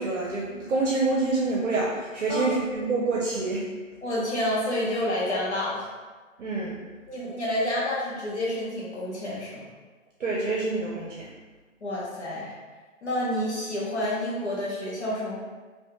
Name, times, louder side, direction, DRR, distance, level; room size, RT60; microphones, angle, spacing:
voice 1, 0.0-3.7 6.4-6.8 10.2-11.3, right 3 dB, 60° right, -3 dB, 0.7 m, -27 dB
voice 2, 4.0-5.9 7.1-9.7 11.8-12.5 13.0-15.4, left 1 dB, 55° left, -6 dB, 0.9 m, -29 dB
2.7 x 2.6 x 3.5 m, 1.4 s
hypercardioid pair, 180°, 40 cm